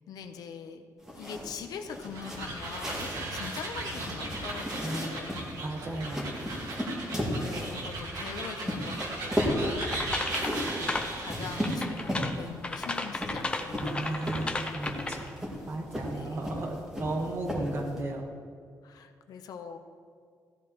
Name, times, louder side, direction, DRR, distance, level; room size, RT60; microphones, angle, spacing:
voice 1, 0.1-0.8 1.2-5.4 7.1-9.0 9.2-9.9 11.2-14.4 16.1-16.4 18.8-19.8, left 6 dB, 75° left, 7 dB, 0.8 m, -42 dB
sound 1, 1.0-18.0, equal, 5° right, 2.1 m, -36 dB
sound 2, 1.8-11.9, right 2 dB, 70° right, 2.0 m, -37 dB
voice 2, 4.8-5.2 5.6-6.3 13.8-18.3, right 2 dB, 40° right, 2 dB, 1.4 m, -35 dB
sound 3, 9.8-11.2 11.6-15.4, left 2 dB, 15° left, 0.7 m, -34 dB
15.5 x 10.5 x 3.1 m, 2.2 s
wide cardioid pair, 150°, 7 cm